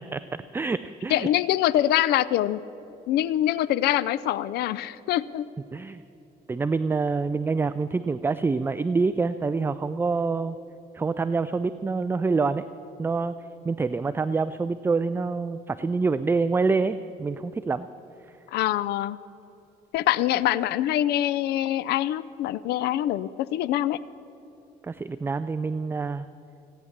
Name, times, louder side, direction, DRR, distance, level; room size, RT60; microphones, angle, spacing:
voice 1, 0.5-1.3 5.7-6.0 6.5-10.6 10.9-12.6 13.0-13.4 13.7-17.9 24.8-26.3, right 4 dB, 15° right, 14 dB, 0.3 m, -26 dB
voice 2, 1.1-2.6 3.1-5.5 18.5-19.2 19.9-24.0, left 13 dB, 75° left, 18 dB, 0.4 m, -24 dB
16.5 x 9.7 x 7.3 m, 2.8 s
cardioid pair, 110°, 17 cm